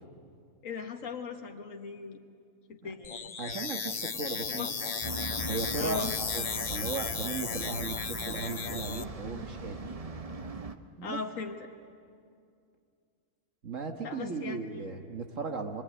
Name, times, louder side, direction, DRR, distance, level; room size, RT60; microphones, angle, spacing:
voice 1, 0.6-2.2 2.7-3.3 4.5-4.7 5.8-6.1 11.0-11.7 14.0-14.6, left 5 dB, 70° left, 4 dB, 1.9 m, -38 dB
sound 1, 3.0-9.0, left 5 dB, 40° left, 0.6 m, -35 dB
voice 2, 3.4-4.9 5.5-6.0 6.3-9.9 11.0-11.2 13.6-15.8, right 4 dB, 65° right, 5 dB, 1.8 m, -37 dB
sound 2, 5.0-10.8, right 3 dB, 30° right, 0.9 m, -40 dB
26.0 x 23.0 x 9.6 m, 2.3 s
omnidirectional pair, 1.4 m